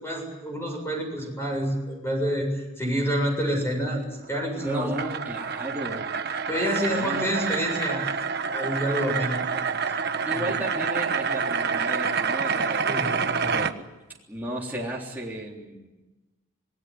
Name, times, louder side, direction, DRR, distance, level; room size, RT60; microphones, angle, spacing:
voice 1, 0.0-4.0 4.3-4.9 6.5-8.1 8.5-9.8 10.3-10.6 12.9-13.5, equal, 15° left, 1 dB, 7.5 m, -28 dB
sound 1, 4.2-13.7, right 5 dB, 55° right, 1.3 m, -28 dB
voice 2, 4.6-6.4 6.9-7.3 10.3-13.9 14.3-16.0, right 1 dB, 10° right, -4 dB, 3.6 m, -35 dB
26.5 x 20.0 x 9.8 m, 1.1 s
head